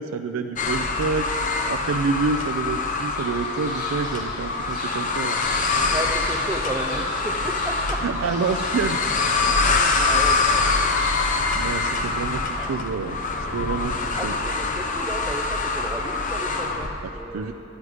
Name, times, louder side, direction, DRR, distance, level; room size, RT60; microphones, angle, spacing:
voice 1, 0.0-5.4 8.0-9.0 11.5-13.2 13.5-14.3 17.3-17.5, right 5 dB, 85° right, 6 dB, 0.4 m, -28 dB
sound 1, 0.6-16.9, left 3 dB, 40° left, 0.6 m, -24 dB
sound 2, 3.2-11.2, equal, 20° left, 2.8 m, -42 dB
voice 2, 5.9-8.0 9.4-9.5 10.0-10.7 12.6-12.9 14.2-17.5, right 2 dB, 10° right, 1 dB, 0.4 m, -33 dB
11.0 x 9.3 x 4.9 m, 3.0 s
head